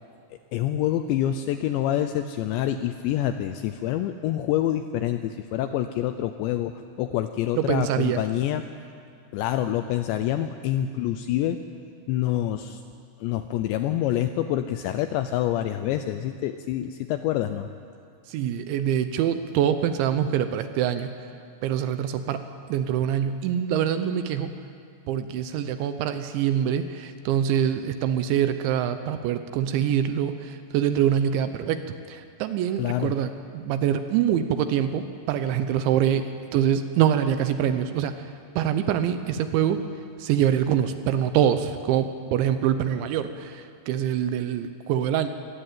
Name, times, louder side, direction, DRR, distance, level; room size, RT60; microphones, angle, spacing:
voice 1, 0.5-8.6 9.3-11.6 12.1-12.8 13.2-17.7 32.8-33.1, left 12 dB, 85° left, 9 dB, 2.6 m, -26 dB
voice 2, 7.6-8.2 18.3-21.3 21.6-24.6 25.1-38.3 38.6-39.8 40.2-45.3, right 9 dB, 75° right, 9 dB, 2.9 m, -25 dB
23.0 x 17.0 x 9.1 m, 2.3 s
omnidirectional pair, 5.8 m